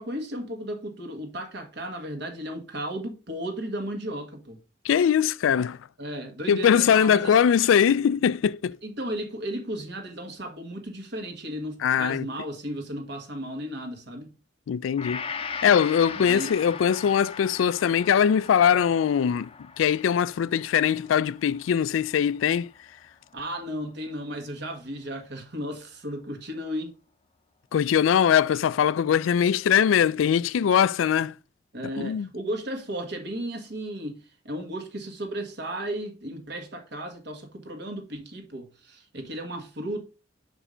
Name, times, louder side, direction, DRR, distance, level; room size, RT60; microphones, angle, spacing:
voice 1, 0.0-4.6 6.0-7.4 8.8-14.3 16.1-16.8 23.3-26.9 31.7-40.1, right 1 dB, 60° right, 1.6 m, -35 dB
voice 2, 4.8-5.8 6.5-8.8 11.8-12.3 14.7-15.2 15.6-22.7 27.7-31.3 32.0-32.3, left 8 dB, 85° left, 0.3 m, -21 dB
Gong, 15.0-23.3 23.7-23.8, left 6 dB, 30° left, 0.6 m, -40 dB
5.5 x 5.0 x 4.9 m
head